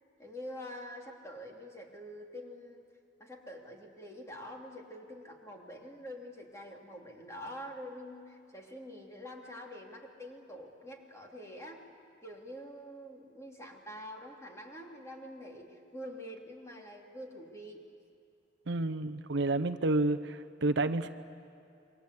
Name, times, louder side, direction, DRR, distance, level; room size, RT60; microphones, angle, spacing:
voice 1, 0.2-2.8 3.2-11.9 12.2-17.8, equal, 15° left, 0 dB, 3.0 m, -46 dB
voice 2, 18.7-21.1, right 2 dB, 65° right, 9 dB, 0.8 m, -30 dB
28.0 x 23.5 x 8.3 m, 2.6 s
head